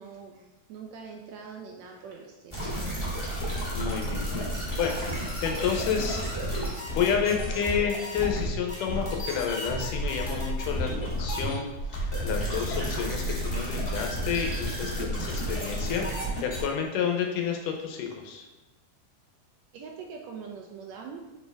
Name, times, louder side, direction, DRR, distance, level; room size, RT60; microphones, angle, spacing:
voice 1, 0.0-2.6 19.7-21.2, right 6 dB, 80° right, 1 dB, 1.6 m, -43 dB
sound 1, 2.5-16.6, equal, 10° left, 1.4 m, -31 dB
voice 2, 3.7-5.0 5.4-6.2 6.9-11.7 11.9-18.5, left 7 dB, 85° left, 2 dB, 2.4 m, -30 dB
6.4 x 4.5 x 3.4 m, 1.1 s
omnidirectional pair, 3.6 m